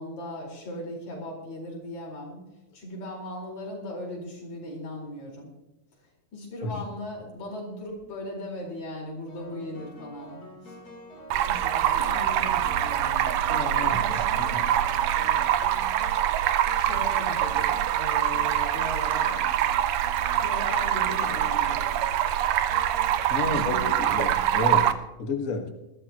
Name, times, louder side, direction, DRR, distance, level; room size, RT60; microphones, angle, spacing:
voice 1, 0.0-2.4 2.7-5.5 6.0-10.8 11.4-13.3 13.8-14.7 16.7-19.5 20.4-22.0 23.5-24.3, left 1 dB, 55° left, -1 dB, 5.8 m, -38 dB
sound 1, 7.7-8.0 9.3-24.1, left 1 dB, 25° left, 3.5 m, -46 dB
Stream, 11.3-24.9, right 11 dB, 85° right, 1.5 m, -24 dB
voice 2, 13.5-14.0 14.4-14.6 23.3-23.7 24.1-24.9 25.2-25.7, left 4 dB, 80° left, 4 dB, 0.7 m, -30 dB
21.0 x 14.0 x 2.9 m, 0.98 s
omnidirectional pair, 4.0 m